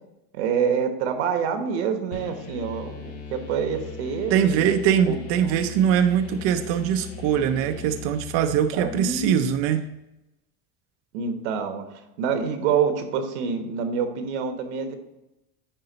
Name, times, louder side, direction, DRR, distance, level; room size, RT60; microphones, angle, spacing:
voice 1, 0.3-4.7 5.1-5.2 8.7-9.4 11.1-11.8 12.2-14.9, right 6 dB, 90° right, 7 dB, 1.2 m, -26 dB
sound 1, 2.1-9.8, left 5 dB, 70° left, 2.1 m, -39 dB
voice 2, 4.3-9.8, right 9 dB, 45° right, 7 dB, 0.5 m, -22 dB
9.8 x 4.0 x 3.9 m, 0.94 s
supercardioid pair, 155°, 33 cm